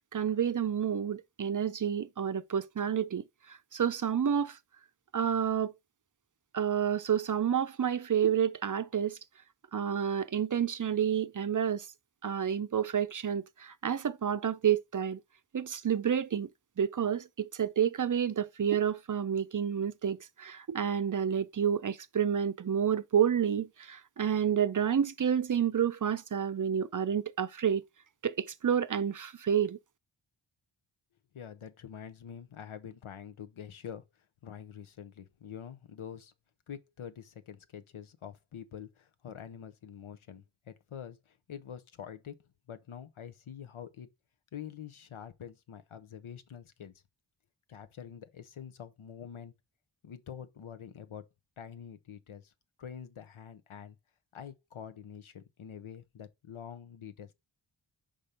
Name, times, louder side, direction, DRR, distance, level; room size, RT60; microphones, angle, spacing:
voice 1, 0.1-4.6 5.1-5.7 6.5-9.2 9.7-11.9 12.2-15.2 15.5-16.5 16.8-27.8 28.2-29.8, right 8 dB, 45° right, 0.5 m, -29 dB
voice 2, 31.3-34.0 34.4-36.3 36.7-42.3 42.7-44.1 44.5-46.9 47.7-49.5 50.0-51.2 51.6-52.5 52.8-54.0 54.3-57.3, left 8 dB, 90° left, 0.9 m, -46 dB
5.3 x 5.1 x 4.3 m
wide cardioid pair, 85°, 47 cm